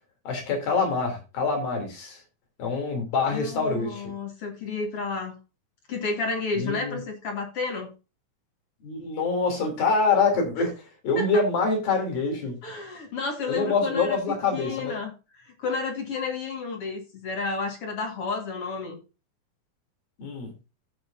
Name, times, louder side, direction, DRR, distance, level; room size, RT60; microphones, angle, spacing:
voice 1, 0.3-2.2 2.6-4.0 6.6-7.0 8.8-10.7 11.0-12.5 13.5-14.9 20.2-20.5, left 4 dB, 80° left, 3 dB, 5.0 m, -25 dB
voice 2, 3.3-5.4 5.9-7.9 11.2-11.3 12.6-19.0, left 4 dB, 50° left, 3 dB, 2.3 m, -31 dB
15.5 x 6.6 x 2.7 m, 0.30 s
omnidirectional pair, 4.0 m